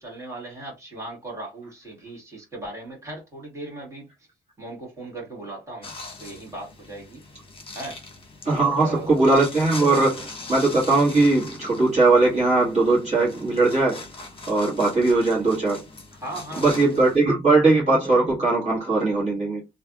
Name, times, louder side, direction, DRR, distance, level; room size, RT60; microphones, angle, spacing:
voice 1, 0.0-4.1 4.6-5.9 6.2-7.2 7.7-8.0 8.5-9.1 16.2-17.4, right 2 dB, 15° right, 1.9 m, -38 dB
sound 1, 5.8-17.2, left 3 dB, 25° left, 1.1 m, -41 dB
voice 2, 8.5-14.0 14.5-15.8 16.6-19.6, right 3 dB, 35° right, 1.6 m, -20 dB
3.2 x 2.6 x 2.4 m
cardioid pair, 90°, 20 cm